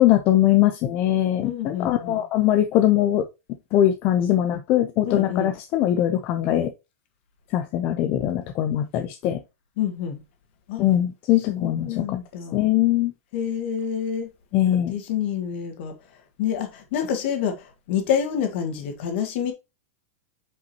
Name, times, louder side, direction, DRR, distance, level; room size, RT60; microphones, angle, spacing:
voice 1, 0.0-3.2 3.7-6.7 7.5-9.4 10.8-12.2 12.5-13.1 14.5-14.9, left 12 dB, 25° left, 0.5 m, -21 dB
voice 2, 1.4-2.2 5.0-5.5 9.8-10.2 10.7-10.8 11.5-12.7 13.3-14.3 14.6-19.5, left 8 dB, 45° left, 1.8 m, -28 dB
8.2 x 5.4 x 2.9 m
supercardioid pair, 175°, 8 cm